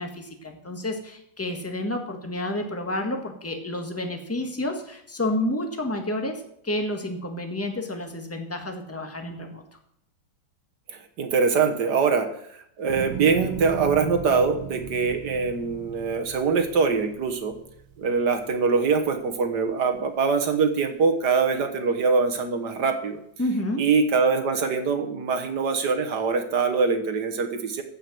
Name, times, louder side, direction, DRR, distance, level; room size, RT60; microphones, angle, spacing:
voice 1, 0.0-9.6 23.4-23.9, left 1 dB, 10° left, 4 dB, 1.4 m, -30 dB
voice 2, 10.9-12.3 12.8-17.5 18.0-23.2 23.8-27.8, right 5 dB, 60° right, 6 dB, 1.7 m, -23 dB
sound 1, 12.9-19.2 19.6-20.2, right 9 dB, 85° right, 2.4 m, -37 dB
15.0 x 5.7 x 7.8 m, 0.72 s
omnidirectional pair, 2.2 m